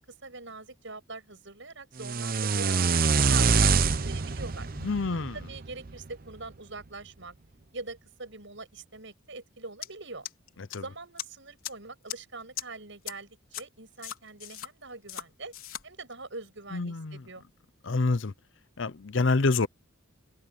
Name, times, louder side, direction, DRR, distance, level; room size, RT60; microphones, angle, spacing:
voice 1, 0.0-4.7 5.3-7.3 7.7-10.2 10.8-15.5 15.8-17.4, right 3 dB, 60° right, 7.7 m, -43 dB
sound 1, 2.0-6.1, right 4 dB, 45° right, 0.7 m, -25 dB
voice 2, 4.8-5.4 10.7-10.8 16.7-17.2 17.8-18.3 18.8-19.7, left 3 dB, 65° left, 0.7 m, -27 dB
sound 2, 9.8-9.9 10.3-10.8 11.2-11.3 11.6-11.7 12.1-12.2 12.6-12.7 13.1-13.2 13.5-13.6 14.0-14.7 15.1-15.2 15.5-15.8, left 11 dB, 90° left, 4.1 m, -37 dB
head